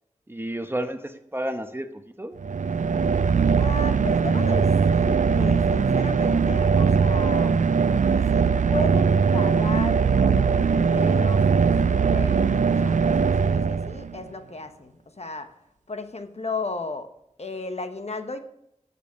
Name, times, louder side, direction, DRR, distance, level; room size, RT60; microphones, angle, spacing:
voice 1, 0.3-2.4, right 1 dB, 20° right, 8 dB, 1.0 m, -31 dB
sound 1, 2.4-14.3, right 5 dB, 85° right, 0.4 m, -21 dB
voice 2, 3.6-7.5 8.3-15.5 15.9-17.1 17.4-18.4, left 3 dB, 60° left, 8 dB, 1.1 m, -35 dB
14.5 x 7.1 x 6.3 m, 0.81 s
wide cardioid pair, 50°, 12 cm